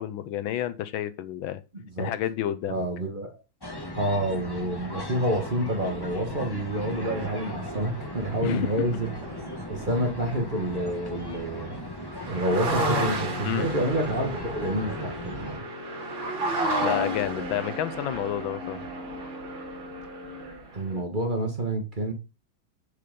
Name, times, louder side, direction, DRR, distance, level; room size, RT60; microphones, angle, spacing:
voice 1, 0.0-1.6 2.0-2.8 8.4-8.8 13.4-13.7 16.8-18.8, left 12 dB, 85° left, 1.5 m, -30 dB
voice 2, 1.7-2.1 2.7-3.4 3.9-9.1 9.7-11.8 12.3-15.7 20.7-22.1, right 1 dB, 25° right, 1.4 m, -28 dB
sound 1, 3.6-15.6, left 1 dB, 15° left, 1.1 m, -38 dB
sound 2, 7.0-11.1 11.7-11.8 11.9-21.0, right 1 dB, 70° right, 3.0 m, -33 dB
6.7 x 5.6 x 5.2 m
omnidirectional pair, 2.2 m